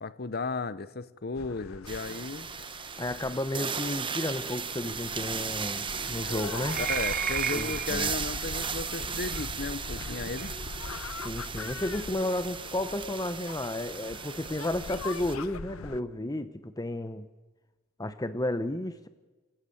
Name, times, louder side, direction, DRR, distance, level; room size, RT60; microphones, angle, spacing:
voice 1, 0.0-2.5 6.8-10.5, left 4 dB, 50° left, 15 dB, 0.9 m, -35 dB
sound 1, 1.3-16.0, left 4 dB, 90° left, 0.8 m, -42 dB
sound 2, 1.9-15.4, right 6 dB, 25° right, 1.1 m, -36 dB
voice 2, 3.0-6.8 7.6-8.1 11.2-17.3 18.0-19.1, left 1 dB, 20° left, 11 dB, 0.8 m, -32 dB
sound 3, 6.7-8.0 9.3-9.4 10.4-10.5, right 8 dB, 45° right, 0.6 m, -32 dB
27.5 x 15.0 x 8.6 m, 1.2 s
head